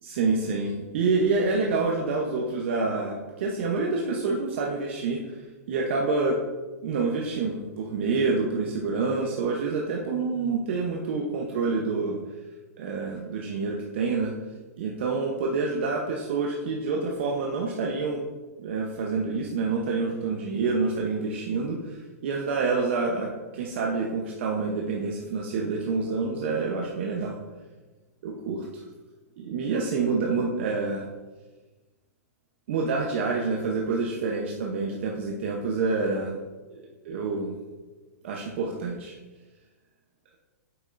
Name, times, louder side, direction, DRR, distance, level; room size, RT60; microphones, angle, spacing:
voice 1, 0.0-5.4 5.7-6.4 6.8-12.2 12.8-14.3 14.8-18.2 18.6-27.4 28.2-28.8 29.4-31.1 32.7-36.4 36.7-37.6 38.2-39.2, right 4 dB, 50° right, -1 dB, 0.9 m, -27 dB
8.9 x 6.9 x 2.6 m, 1.2 s
supercardioid pair, 170°, 8 cm